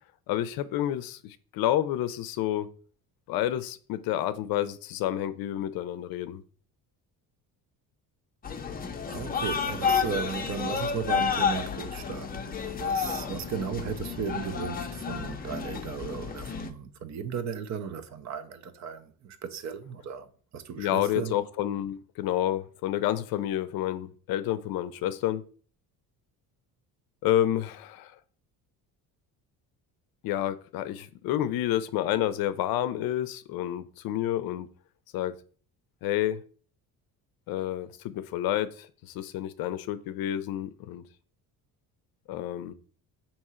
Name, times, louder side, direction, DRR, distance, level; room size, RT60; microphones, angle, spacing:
voice 1, 0.3-2.7 3.3-6.4 20.8-25.4 27.2-28.1 30.2-34.7 35.1-35.3 36.0-36.4 37.5-41.0 42.3-42.7, left 12 dB, 70° left, 0.5 m, -29 dB
sound 1, 8.4-16.7, left 6 dB, 25° left, 0.6 m, -31 dB
voice 2, 9.1-21.4, right 7 dB, 45° right, 0.6 m, -36 dB
3.6 x 2.9 x 4.3 m
cardioid pair, 105°, 37 cm